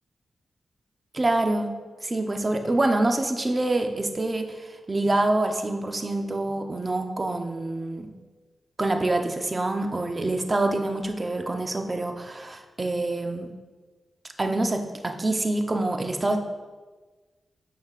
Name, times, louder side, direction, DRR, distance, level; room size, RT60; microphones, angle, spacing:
voice 1, 1.1-1.7 2.0-8.1 8.8-13.5 14.4-16.4, right 2 dB, 30° right, 5 dB, 0.7 m, -26 dB
9.0 x 5.2 x 2.5 m, 1.3 s
cardioid pair, 75°, 0 cm